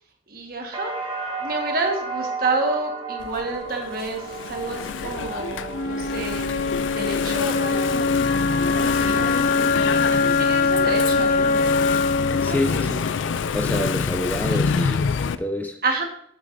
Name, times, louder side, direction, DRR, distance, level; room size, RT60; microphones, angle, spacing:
voice 1, 0.3-1.0 1.4-8.2 8.8-9.5 10.0-12.9 14.5-14.6 15.8-16.0, right 3 dB, 50° right, 2 dB, 1.5 m, -30 dB
sound 1, 0.7-8.6 9.0-9.7, right 3 dB, 25° right, 1.3 m, -34 dB
Engine / Mechanisms, 3.2-15.4, left 6 dB, 85° left, 0.4 m, -27 dB
Wind instrument woodwind instrument, 5.7-13.7, left 4 dB, 45° left, 0.7 m, -23 dB
voice 2, 12.4-13.1 13.5-15.8, left 1 dB, 10° left, 4 dB, 0.4 m, -27 dB
9.1 x 8.4 x 2.6 m, 0.69 s
head